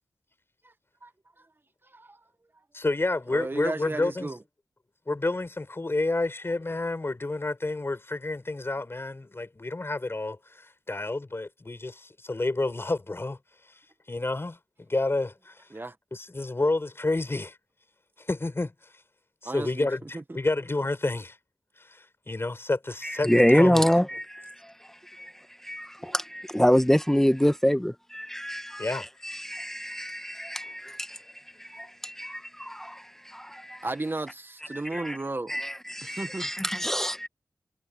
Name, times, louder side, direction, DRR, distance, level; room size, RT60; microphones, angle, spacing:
voice 1, 1.9-2.2 3.3-4.4 15.7-15.9 19.4-19.9 20.1-20.4 26.0-26.1 33.8-35.5 36.0-36.5, right 2 dB, 35° right, 1.5 m, -34 dB
voice 2, 2.7-4.3 5.1-13.4 14.1-15.7 16.1-17.6 18.2-18.7 19.4-21.4 21.8-23.9 28.8-29.1, left 2 dB, 40° left, 5.4 m, -29 dB
voice 3, 23.0-24.7 25.1-25.3 25.6-31.2 31.6-33.8 34.9-35.2 35.5-37.3, equal, 5° left, 1.2 m, -26 dB
cardioid pair, 45°, 6 cm